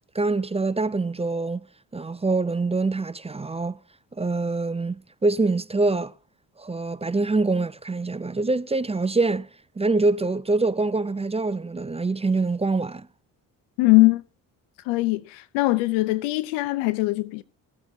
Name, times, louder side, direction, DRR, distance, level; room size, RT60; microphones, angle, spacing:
voice 1, 0.1-1.6 1.9-3.8 4.2-5.0 5.2-6.1 6.6-9.5 9.8-13.1, right 3 dB, 15° right, 0.5 m, -24 dB
voice 2, 13.8-14.2 14.9-17.4, left 21 dB, 90° left, 0.6 m, -21 dB
16.0 x 8.0 x 2.7 m
supercardioid pair, 55°, 43 cm